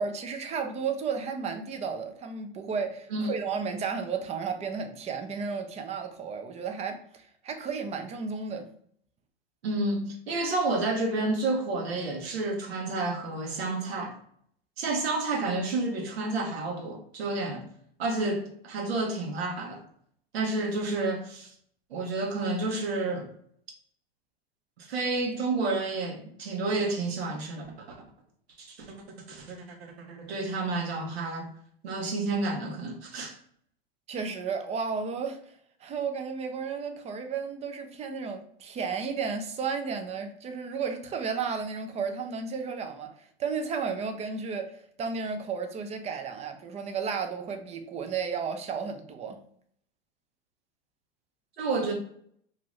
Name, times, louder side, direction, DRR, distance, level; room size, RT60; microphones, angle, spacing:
voice 1, 0.0-8.7 34.1-35.4 35.8-49.4, right 5 dB, 20° right, 0.5 m, -33 dB
voice 2, 9.6-14.2 14.8-17.7 18.0-19.8 20.3-21.5 21.9-23.3 24.8-28.0 28.6-28.9 29.3-31.5 31.8-33.4 51.6-51.9, right 2 dB, 80° right, 0.9 m, -30 dB
2.6 x 2.6 x 3.1 m
hypercardioid pair, 95°, 31 cm